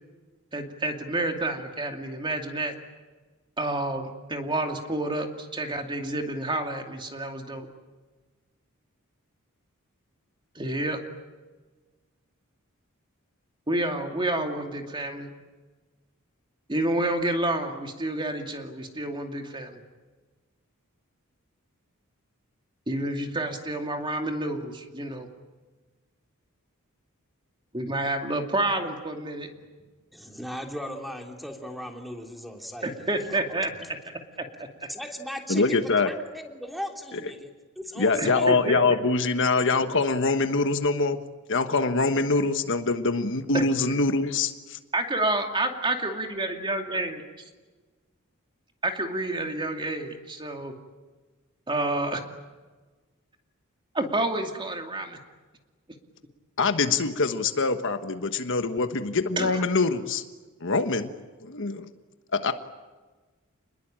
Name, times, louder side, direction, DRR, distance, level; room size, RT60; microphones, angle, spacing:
voice 1, 0.5-2.7 3.6-7.7 10.5-11.0 13.7-15.3 16.7-19.8 22.9-25.3 27.7-29.5 32.8-34.0 34.4-34.7 38.2-38.8 43.5-43.6 44.9-47.2 48.8-50.7 51.7-52.2 53.9-55.2 59.4-59.7, right 2 dB, 20° right, 4 dB, 2.5 m, -29 dB
voice 2, 30.1-33.9 34.9-37.5 37.7-38.5, equal, ahead, 3 dB, 3.1 m, -38 dB
voice 3, 35.5-36.1 38.0-41.2 41.5-44.8 56.6-60.2 60.6-61.1 61.4-61.9 62.3-62.5, left 3 dB, 60° left, 8 dB, 1.3 m, -24 dB
29.0 x 21.0 x 8.8 m, 1.3 s
head